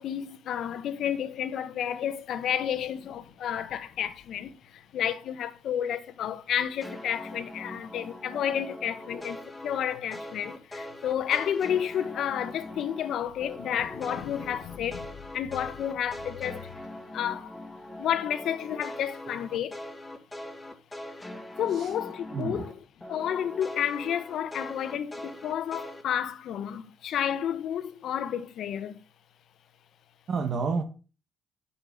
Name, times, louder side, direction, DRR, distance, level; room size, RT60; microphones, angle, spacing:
voice 1, 0.0-15.1 15.3-16.7 17.1-17.5 17.9-19.8 21.6-22.7 23.1-29.0, left 9 dB, 70° left, 1.0 m, -31 dB
sound 1, 6.8-13.1 13.4-22.7 23.0-26.0, left 1 dB, 10° left, 2.2 m, -42 dB
voice 2, 22.3-22.7 30.3-30.8, right 5 dB, 55° right, 1.5 m, -30 dB
9.5 x 5.6 x 6.7 m
supercardioid pair, 70°, 0 cm